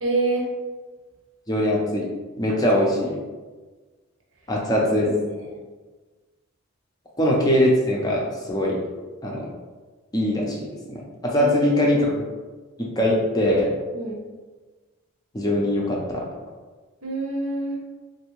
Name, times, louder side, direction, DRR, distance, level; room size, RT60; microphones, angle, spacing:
voice 1, 0.0-0.5 2.5-3.2 4.8-5.6 11.3-11.8 13.9-14.2 17.0-17.8, right 2 dB, 75° right, -2 dB, 0.8 m, -28 dB
voice 2, 1.5-2.1 2.4-3.1 4.5-5.1 7.2-8.8 9.2-9.5 10.1-12.2 12.8-13.7 15.3-16.3, left 1 dB, 20° left, -2 dB, 0.4 m, -22 dB
3.3 x 2.6 x 3.0 m, 1.3 s
head